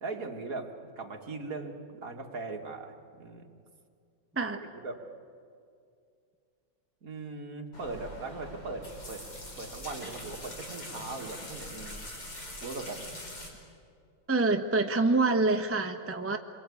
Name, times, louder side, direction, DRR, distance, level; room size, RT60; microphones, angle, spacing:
voice 1, 0.0-3.5 4.6-5.0 7.0-9.3 9.5-12.0 12.6-13.1, right 3 dB, 45° right, 2 dB, 2.1 m, -39 dB
sound 1, 7.7-13.5, left 1 dB, 65° left, 5.4 m, -43 dB
voice 2, 14.3-16.4, right 3 dB, 10° right, 4 dB, 0.8 m, -26 dB
27.0 x 23.0 x 8.6 m, 2.3 s
omnidirectional pair, 2.1 m